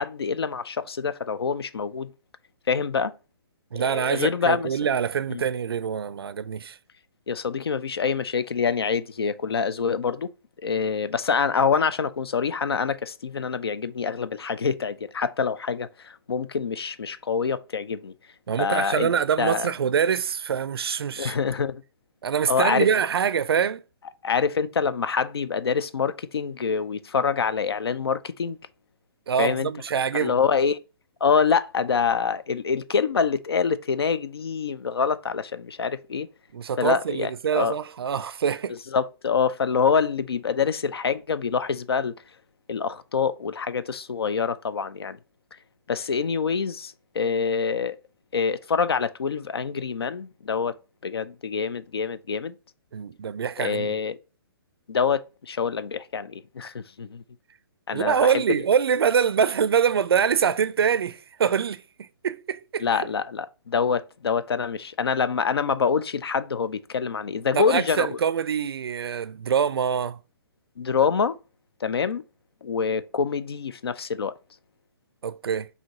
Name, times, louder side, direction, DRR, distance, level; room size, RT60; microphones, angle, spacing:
voice 1, 0.0-2.1 2.7-3.1 3.7-4.7 5.3-5.4 7.3-10.3 10.6-18.1 18.6-19.7 21.2-21.8 22.5-22.9 24.2-28.6 29.4-29.7 30.1-30.8 31.2-36.3 36.8-37.8 38.9-42.1 42.7-45.2 45.9-48.0 48.3-50.8 51.0-52.6 53.6-54.2 54.9-57.2 57.9-58.4 62.8-68.2 70.8-71.4 71.8-72.2 72.6-74.4, left 6 dB, 90° left, 0.4 m, -26 dB
voice 2, 3.7-6.8 18.5-21.4 22.2-23.8 29.3-30.3 36.5-38.8 52.9-53.9 57.9-63.1 67.5-70.2 75.2-75.7, right 7 dB, 80° right, 0.4 m, -25 dB
4.8 x 2.7 x 2.7 m
hypercardioid pair, 140°, 13 cm